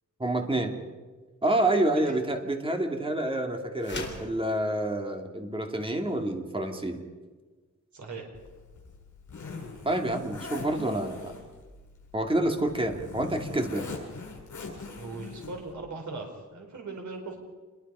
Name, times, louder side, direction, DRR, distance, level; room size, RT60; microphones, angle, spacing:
voice 1, 0.2-0.7 1.4-7.0 9.8-11.3 12.1-13.9, right 1 dB, 15° right, 4 dB, 2.4 m, -28 dB
sound 1, 3.8-4.3, left 3 dB, 35° left, 4.3 m, -37 dB
voice 2, 7.9-8.3 15.0-17.4, right 3 dB, 70° right, 2 dB, 4.7 m, -39 dB
Zipper (clothing), 8.3-15.7, left 4 dB, 70° left, 7.0 m, -42 dB
27.0 x 22.0 x 5.6 m, 1.4 s
wide cardioid pair, 165°, 31 cm